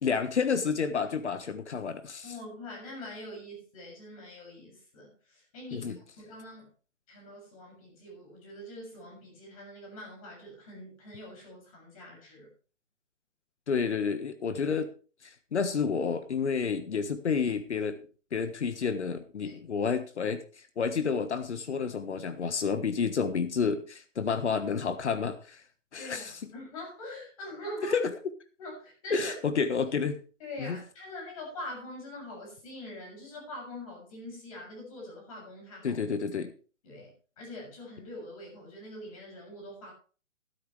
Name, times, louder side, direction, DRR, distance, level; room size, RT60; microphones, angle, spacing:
voice 1, 0.0-2.3 5.7-6.0 13.7-14.9 15.2-18.0 18.3-20.4 20.8-25.6 25.9-26.3 27.9-28.1 29.1-30.2 30.6-30.8 35.8-36.5, left 5 dB, 65° left, 10 dB, 1.5 m, -30 dB
voice 2, 2.2-6.7 7.1-12.5 19.4-19.6 26.0-28.0 28.6-29.4 30.4-36.0 36.8-39.9, left 1 dB, 30° left, 0 dB, 7.0 m, -44 dB
13.5 x 12.5 x 3.3 m, 0.37 s
hypercardioid pair, 175°, 37 cm